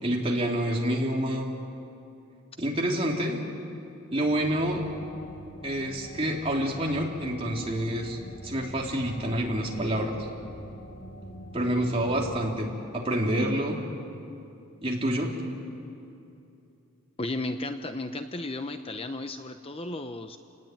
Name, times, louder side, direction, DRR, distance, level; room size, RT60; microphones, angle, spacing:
voice 1, 0.0-1.5 2.6-3.4 4.1-4.8 5.6-8.2 8.4-10.3 11.5-13.8 14.8-15.3, right 1 dB, 25° right, -1 dB, 3.3 m, -27 dB
sound 1, 4.2-12.4, equal, 80° left, 2.6 m, -44 dB
voice 2, 17.2-20.4, left 2 dB, 25° left, 8 dB, 0.7 m, -34 dB
29.0 x 19.0 x 9.2 m, 2.8 s
head